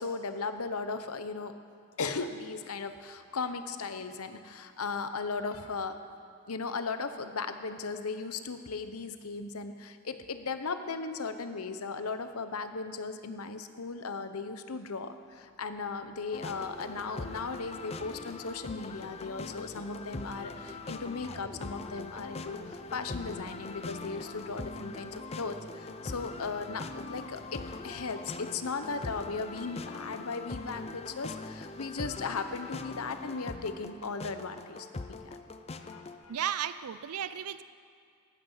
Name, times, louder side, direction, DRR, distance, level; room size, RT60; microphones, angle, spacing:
voice 1, 0.0-1.5 2.0-6.0 6.5-34.9 35.2-35.3 35.8-36.4, left 4 dB, 70° left, 9 dB, 0.9 m, -37 dB
sound 1, 15.1-29.2, left 1 dB, 15° right, 2.2 m, -57 dB
sound 2, 16.3-36.2, left 3 dB, 30° left, 0.5 m, -42 dB
voice 2, 36.3-37.6, right 9 dB, 80° right, 14 dB, 0.5 m, -34 dB
16.0 x 12.0 x 5.6 m, 2.4 s
head